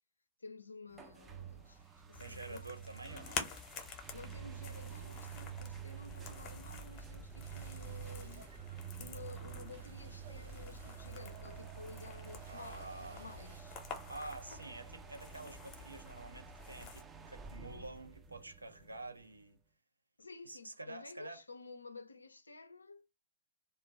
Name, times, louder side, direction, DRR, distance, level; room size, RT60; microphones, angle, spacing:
voice 1, 0.4-2.6 4.1-8.7 9.0-13.8 14.5-14.8 20.2-23.1, left 4 dB, 75° left, 0.4 m, -52 dB
sound 1, 0.9-19.4, right 8 dB, 15° right, 0.3 m, -49 dB
sound 2, 2.1-17.0, left 6 dB, 30° left, 0.7 m, -49 dB
voice 2, 2.2-3.4 12.5-13.3 14.1-19.6 20.4-21.4, right 2 dB, 80° right, 0.4 m, -48 dB
sound 3, 7.4-13.6, right 4 dB, 60° right, 0.9 m, -62 dB
2.2 x 2.1 x 3.2 m
figure-of-eight pair, 105°, 0 cm